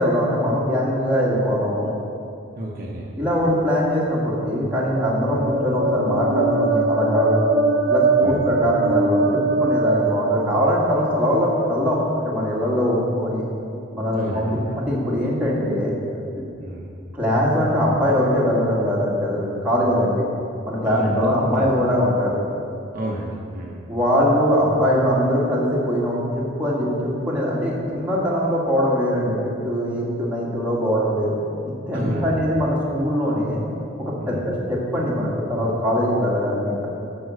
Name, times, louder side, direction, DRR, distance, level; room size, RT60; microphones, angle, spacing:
voice 1, 0.0-1.9 3.1-7.4 7.9-13.4 13.9-14.5 14.8-15.9 16.4-16.5 17.1-20.2 20.6-22.4 23.9-31.3 31.9-33.6 34.0-36.9, equal, 5° right, -6 dB, 2.0 m, -22 dB
voice 2, 2.6-3.1 5.3-5.4 8.2-8.4 14.1-14.8 16.6-16.9 20.8-21.7 22.9-23.8 31.9-32.5 34.2-34.4, right 1 dB, 45° right, -3 dB, 1.0 m, -30 dB
sound 1, 4.3-11.1, right 3 dB, 70° right, 1.1 m, -22 dB
13.0 x 5.4 x 6.3 m, 2.6 s
head